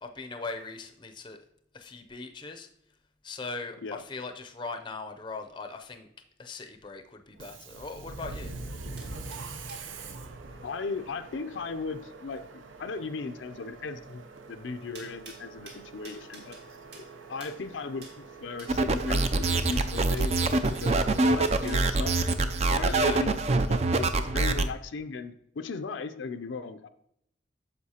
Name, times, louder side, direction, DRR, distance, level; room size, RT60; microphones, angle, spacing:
voice 1, 0.0-1.4 1.7-2.7 3.2-6.1 6.4-8.5 22.9-23.3, left 3 dB, 25° left, 6 dB, 0.5 m, -40 dB
Subway metro underground, 7.3-20.8, right 3 dB, 85° right, 0.7 m, -45 dB
sound 1, 9.0-9.8 14.9-16.6 16.9-17.1 17.4-17.6 18.0-18.2 18.6-18.7 19.4-21.8, right 4 dB, 60° right, 1.9 m, -48 dB
voice 2, 10.6-16.6 17.0-21.0 21.3-22.2 22.7-26.9, left 4 dB, 75° left, 9 dB, 0.5 m, -37 dB
sound 2, 18.7-24.7, right 2 dB, 35° right, 0.4 m, -25 dB
9.5 x 6.9 x 2.8 m, 0.73 s
head